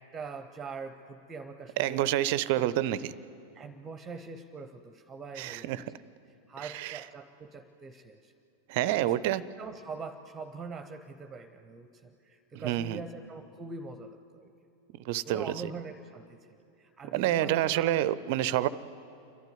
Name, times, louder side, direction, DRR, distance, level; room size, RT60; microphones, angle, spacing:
voice 1, 0.0-2.7 3.5-5.8 6.3-8.3 9.0-14.5 15.2-16.5 16.8-18.0, right 4 dB, 20° right, 9 dB, 0.9 m, -43 dB
voice 2, 1.8-3.1 5.4-5.8 6.6-7.0 8.7-9.4 12.6-13.0 15.0-15.7 17.1-18.7, right 13 dB, 50° right, 18 dB, 0.6 m, -28 dB
28.5 x 12.0 x 9.6 m, 2.7 s
figure-of-eight pair, 90°, 0 cm